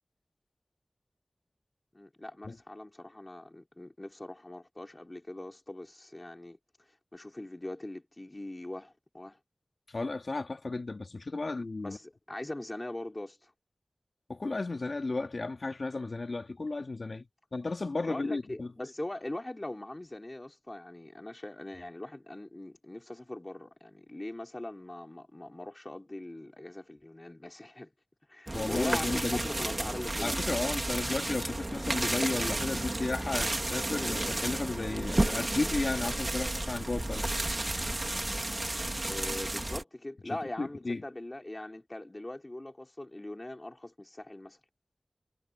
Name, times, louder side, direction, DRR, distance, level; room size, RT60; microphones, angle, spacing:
voice 1, 1.9-6.6 7.1-9.4 11.8-13.5 18.0-27.9 28.3-30.8 39.0-44.6, left 1 dB, 30° left, 4.9 m, -41 dB
voice 2, 9.9-12.0 14.3-18.7 28.5-29.5 30.2-37.2 40.6-41.0, left 3 dB, 70° left, 2.7 m, -34 dB
sound 1, 28.5-39.8, right 1 dB, 35° right, 2.9 m, -32 dB
wide cardioid pair, 65°, 0 cm